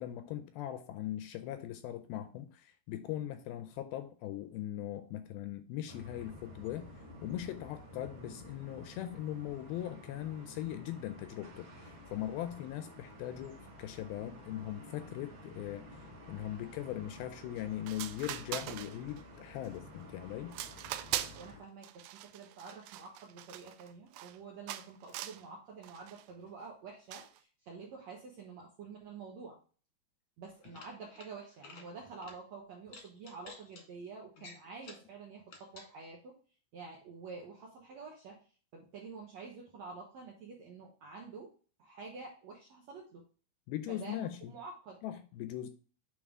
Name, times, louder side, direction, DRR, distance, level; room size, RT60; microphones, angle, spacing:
voice 1, 0.0-6.9 7.2-15.9 16.3-20.6 43.7-44.6 45.0-45.7, left 12 dB, 80° left, 2.3 m, -40 dB
sound 1, 5.9-21.6, left 1 dB, 45° right, 1.5 m, -52 dB
sound 2, 17.6-17.7 17.9-19.2 19.6-20.0 20.5-21.5 21.8-24.4 24.7-25.4 25.8-26.2 27.1-27.4, right 13 dB, 90° right, 2.0 m, -41 dB
voice 2, 21.3-29.6 30.4-36.4 36.7-38.4 38.7-41.5 41.8-43.2 43.9-45.0, right 4 dB, 70° right, 1.7 m, -48 dB
sound 3, 30.5-31.3 31.6-31.9 32.2-32.4 32.9-33.8 34.4-35.1 35.5-35.9, left 4 dB, 55° left, 1.6 m, -52 dB
8.8 x 3.8 x 3.6 m
omnidirectional pair, 4.6 m